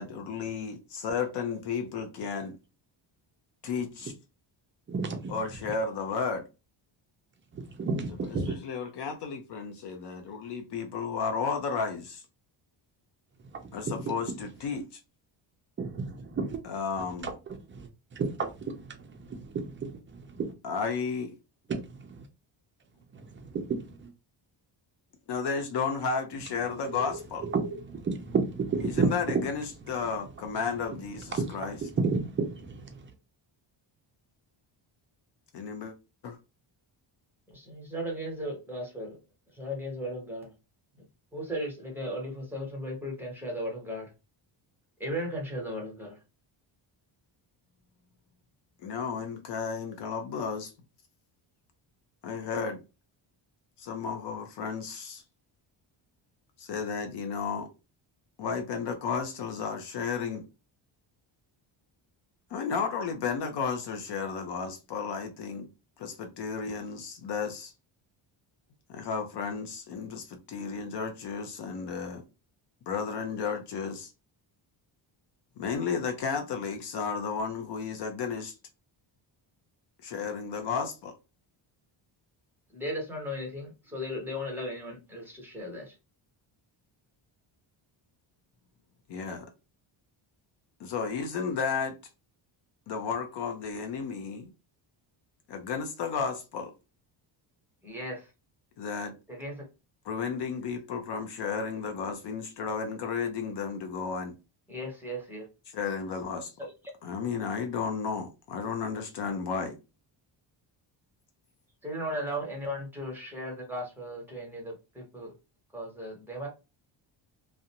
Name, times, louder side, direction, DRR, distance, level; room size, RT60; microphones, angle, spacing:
voice 1, 0.0-2.6 3.6-4.1 5.3-6.5 8.5-12.2 13.7-15.0 16.6-17.3 20.6-21.4 25.3-27.5 28.8-31.8 35.5-35.9 36.2-36.4 48.8-50.7 52.2-52.8 53.8-55.2 56.6-57.7 58.4-60.5 62.5-65.7 66.0-67.7 68.9-72.2 72.9-74.1 75.6-78.5 80.0-81.1 89.1-89.5 90.8-92.0 92.9-94.5 95.5-96.7 98.8-99.1 100.1-104.3 105.7-106.5 107.0-109.8, left 5 dB, 60° left, 0.6 m, -33 dB
voice 2, 4.9-5.3 7.5-8.6 13.5-14.1 15.8-16.6 17.2-20.5 21.7-22.2 23.1-24.1 26.8-29.4 31.3-33.1, right 4 dB, 25° right, 0.4 m, -32 dB
voice 3, 37.5-39.2 39.5-40.5 41.0-41.1 41.3-44.1 45.0-46.2 82.7-86.0 97.8-98.3 99.3-99.6 104.7-105.5 106.6-106.7 111.8-115.3 115.7-116.5, equal, 5° right, 0.9 m, -36 dB
2.5 x 2.1 x 2.7 m
cardioid pair, 150°, 48 cm